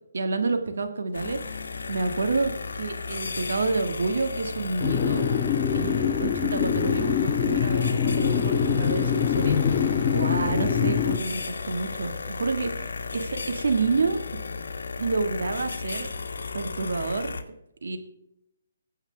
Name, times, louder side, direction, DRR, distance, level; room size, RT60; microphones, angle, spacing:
voice 1, 0.1-1.4 1.9-5.3 5.7-14.2 15.0-16.1 16.5-17.3 17.8-18.0, right 3 dB, 80° right, 6 dB, 1.9 m, -28 dB
sound 1, 1.1-17.4, left 4 dB, 80° left, 1.2 m, -35 dB
sound 2, 4.8-11.2, left 8 dB, 25° left, 0.9 m, -24 dB
20.5 x 8.0 x 3.5 m, 0.82 s
hypercardioid pair, 155°, 0 cm